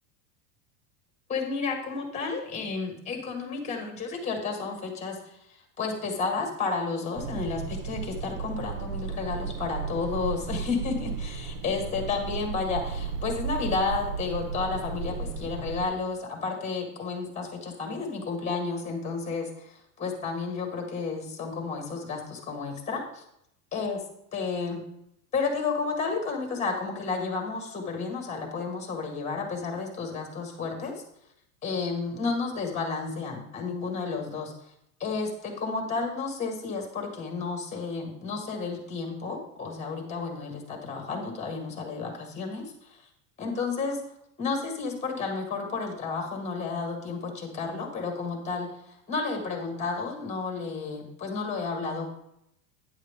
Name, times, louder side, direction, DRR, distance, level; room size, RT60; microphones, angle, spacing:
voice 1, 1.3-23.2 23.7-24.0 24.3-24.8 25.3-30.9 31.6-34.5 35.0-43.0 43.4-44.0 44.4-52.1, left 4 dB, 15° left, 2 dB, 1.8 m, -32 dB
sound 1, 7.2-15.9, right 5 dB, 45° right, 0.7 m, -34 dB
9.4 x 7.3 x 3.6 m, 0.77 s
supercardioid pair, 130°, 46 cm